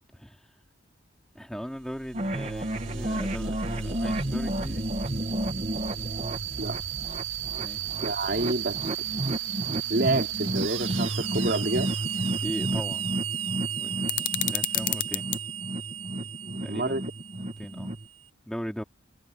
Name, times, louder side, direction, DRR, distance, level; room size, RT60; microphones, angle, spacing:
voice 1, 0.1-0.5 1.3-4.8 7.6-7.9 12.4-13.1 13.8-15.3 16.6-17.0 17.3-18.0 18.5-18.8, equal, 5° left, 4.4 m, -38 dB
sound 1, 1.8-18.1, right 9 dB, 85° right, 1.8 m, -35 dB
sound 2, 2.1-18.1, right 1 dB, 35° right, 1.9 m, -32 dB
voice 2, 8.0-8.8 9.9-11.9 14.9-15.0 16.1-17.0, right 2 dB, 55° right, 3.5 m, -29 dB
sound 3, 14.1-15.4, left 13 dB, 45° left, 0.7 m, -29 dB
head